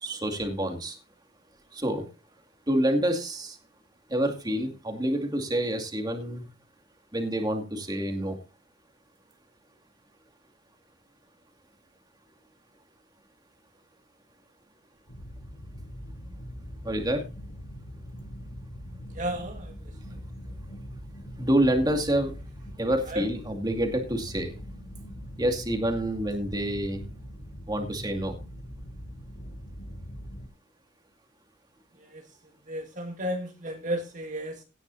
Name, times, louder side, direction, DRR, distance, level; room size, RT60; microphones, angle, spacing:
voice 1, 0.0-1.0 1.7-2.1 2.7-3.6 4.1-6.5 7.1-8.4 16.8-17.2 21.4-22.3 22.8-24.5 25.4-27.1 27.7-28.4, right 1 dB, 20° right, 4 dB, 2.3 m, -27 dB
sound 1, 15.1-30.5, equal, 75° left, 3.2 m, -42 dB
voice 2, 19.1-20.2 23.1-23.3 32.0-32.2 32.7-34.6, equal, 40° right, 3 dB, 1.8 m, -33 dB
17.0 x 10.5 x 2.7 m, 0.29 s
head